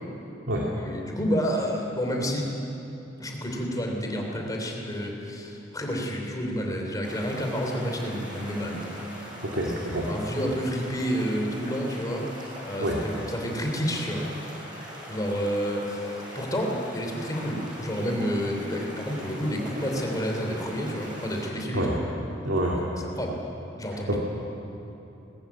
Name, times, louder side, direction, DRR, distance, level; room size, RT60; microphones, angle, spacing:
voice 1, 0.8-2.5 3.2-9.3 10.0-12.3 12.6-13.0 13.3-14.2 15.1-22.0 23.0-23.4 23.8-24.2, equal, 20° left, 1 dB, 3.1 m, -29 dB
sound 1, 7.0-21.5, equal, 25° right, 6.4 m, -41 dB
voice 2, 9.5-10.1 12.8-13.0 21.7-21.9 22.4-22.8 24.1-24.2, right 1 dB, 75° right, -3 dB, 2.4 m, -26 dB
20.0 x 14.5 x 9.4 m, 2.9 s
head